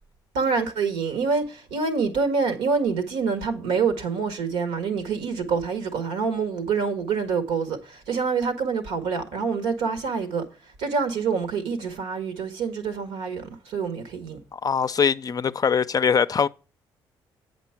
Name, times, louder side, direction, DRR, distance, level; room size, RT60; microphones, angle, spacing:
voice 1, 0.3-10.4 10.8-14.4, right 5 dB, 80° right, 1.5 m, -26 dB
voice 2, 14.5-16.5, left 6 dB, 35° left, 0.5 m, -22 dB
8.6 x 5.2 x 5.8 m
supercardioid pair, 60°, 10 cm